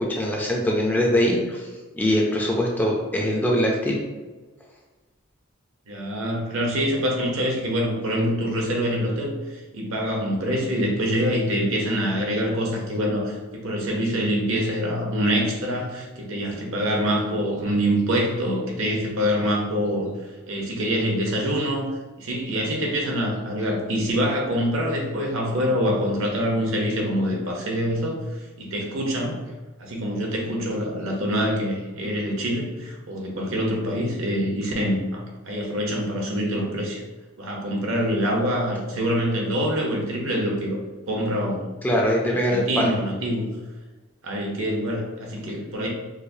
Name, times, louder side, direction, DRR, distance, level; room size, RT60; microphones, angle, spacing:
voice 1, 0.0-1.7 1.9-4.0 41.8-42.9, equal, 10° left, -2 dB, 0.4 m, -22 dB
voice 2, 5.9-20.1 20.5-21.9 22.2-28.2 28.6-29.4 29.8-37.0 37.4-40.8 41.1-41.6 42.3-43.5 44.2-45.9, equal, 70° right, 0 dB, 0.8 m, -25 dB
4.8 x 2.0 x 2.6 m, 1.3 s
head